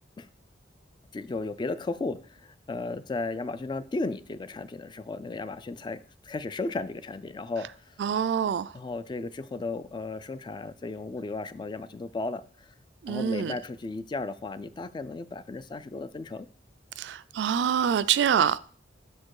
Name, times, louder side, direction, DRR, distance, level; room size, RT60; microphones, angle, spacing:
voice 1, 1.1-7.9 8.7-12.7 13.1-16.5, left 3 dB, 25° left, 0.3 m, -35 dB
voice 2, 8.0-8.7 13.0-13.6 17.0-18.6, right 8 dB, 70° right, 0.3 m, -25 dB
6.6 x 4.4 x 4.7 m
head